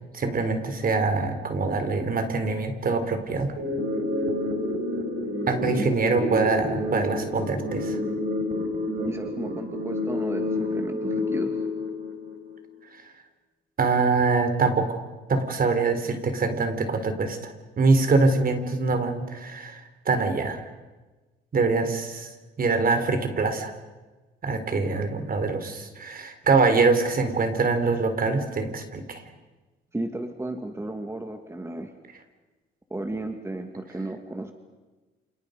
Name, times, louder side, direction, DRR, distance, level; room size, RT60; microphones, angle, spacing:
voice 1, 0.1-3.5 5.5-8.0 13.8-15.0 15.3-20.7 21.5-23.7 24.4-29.2, right 3 dB, 45° right, 8 dB, 4.0 m, -24 dB
sound 1, 3.6-12.6, left 1 dB, 70° right, 5.4 m, -29 dB
voice 2, 9.0-11.6 29.9-31.9 32.9-34.5, right 1 dB, 15° right, 5 dB, 2.0 m, -34 dB
30.0 x 27.5 x 5.3 m, 1.2 s
cardioid pair, 90°, 20 cm